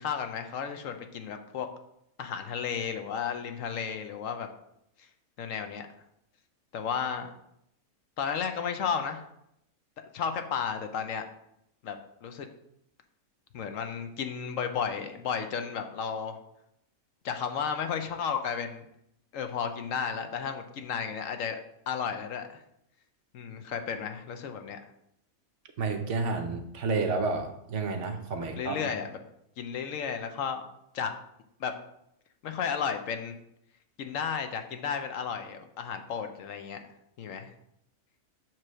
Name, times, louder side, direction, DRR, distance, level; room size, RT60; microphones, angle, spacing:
voice 1, 0.0-1.7 2.2-4.5 5.4-5.9 6.7-7.3 8.2-9.2 10.1-11.2 11.8-12.5 13.5-16.4 17.2-18.8 19.3-21.6 21.9-22.6 23.3-24.8 28.6-29.2 29.6-30.6 30.9-31.1 31.6-31.7 32.4-33.4 34.0-36.8 37.2-37.5, left 7 dB, 70° left, 7 dB, 1.0 m, -33 dB
voice 2, 25.8-28.9, right 3 dB, 60° right, 5 dB, 1.1 m, -30 dB
7.5 x 3.2 x 6.1 m, 0.77 s
omnidirectional pair, 1.5 m